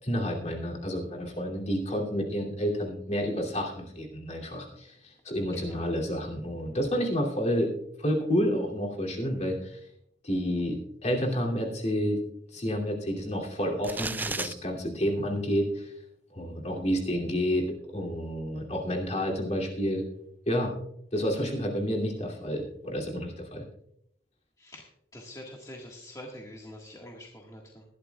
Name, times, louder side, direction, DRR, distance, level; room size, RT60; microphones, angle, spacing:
voice 1, 0.0-7.7 8.0-9.8 10.2-12.2 12.5-15.9 16.3-20.0 20.5-20.7 21.1-23.6, equal, 40° left, 0 dB, 2.7 m, -30 dB
voice 2, 5.5-5.9 24.6-24.9 25.1-27.8, left 1 dB, 20° left, -1 dB, 1.7 m, -45 dB
sound 1, 13.8-14.5, right 3 dB, 10° right, 0.4 m, -32 dB
20.5 x 11.5 x 2.3 m, 0.74 s
head